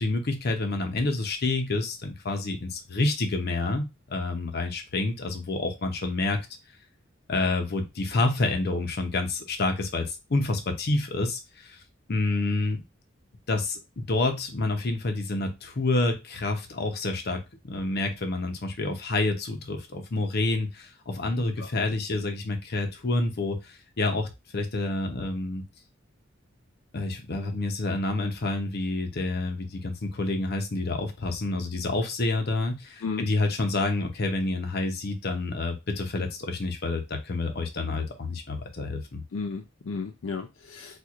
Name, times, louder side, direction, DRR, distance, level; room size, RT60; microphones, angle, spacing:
voice 1, 0.0-6.4 7.3-11.8 12.1-12.8 13.5-25.6 26.9-39.2, left 2 dB, 55° left, 4 dB, 0.7 m, -28 dB
voice 2, 39.3-41.0, left 4 dB, 80° left, 4 dB, 0.4 m, -34 dB
4.4 x 2.4 x 2.4 m, 0.24 s
head